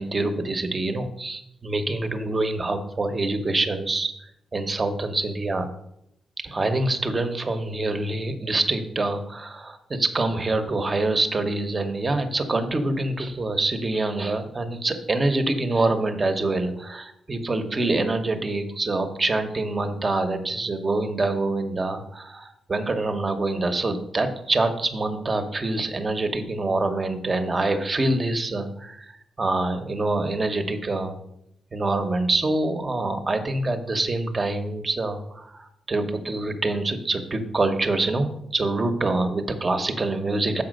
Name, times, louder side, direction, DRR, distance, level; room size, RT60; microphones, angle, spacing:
voice 1, 0.0-4.1 4.5-5.7 6.4-29.1 29.4-31.1 31.7-40.6, right 2 dB, 25° right, 8 dB, 0.9 m, -25 dB
6.9 x 5.0 x 6.4 m, 0.77 s
cardioid pair, 125°, 0 cm